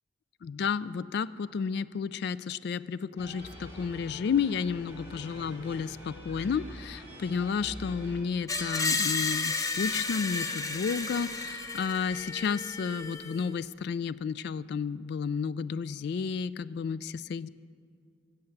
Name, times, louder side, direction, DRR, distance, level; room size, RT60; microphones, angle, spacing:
voice 1, 0.4-17.5, left 6 dB, 55° left, 17 dB, 0.3 m, -32 dB
sound 1, 3.2-8.2, equal, 10° right, 3.0 m, -45 dB
Screech, 8.5-13.4, left 4 dB, 20° left, 0.6 m, -32 dB
15.0 x 8.0 x 7.1 m, 2.1 s
head